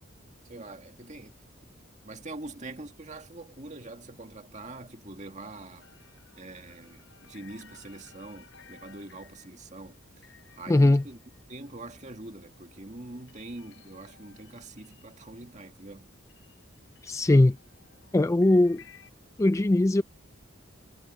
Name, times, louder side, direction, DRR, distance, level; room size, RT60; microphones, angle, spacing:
voice 1, 0.4-1.4 2.0-5.9 6.4-11.2 11.5-16.1, right 2 dB, 35° right, 2.1 m, -44 dB
sound 1, 5.8-16.0 16.3-19.1, left 6 dB, 60° left, 6.5 m, -58 dB
voice 2, 10.7-11.0 17.0-17.6 18.1-18.8 19.4-20.0, left 2 dB, 15° left, 0.3 m, -20 dB
head